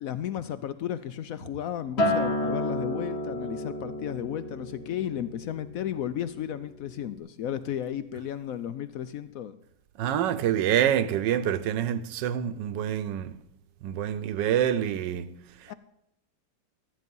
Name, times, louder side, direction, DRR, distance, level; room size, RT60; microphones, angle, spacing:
voice 1, 0.0-9.5 15.7-15.8, left 10 dB, 80° left, 0.7 m, -34 dB
Acoustic guitar, 2.0-6.4 6.8-7.2, left 1 dB, 35° left, 1.8 m, -31 dB
voice 2, 10.0-13.3 13.8-15.3, right 10 dB, 75° right, 1.3 m, -26 dB
13.5 x 9.5 x 5.4 m
omnidirectional pair, 2.0 m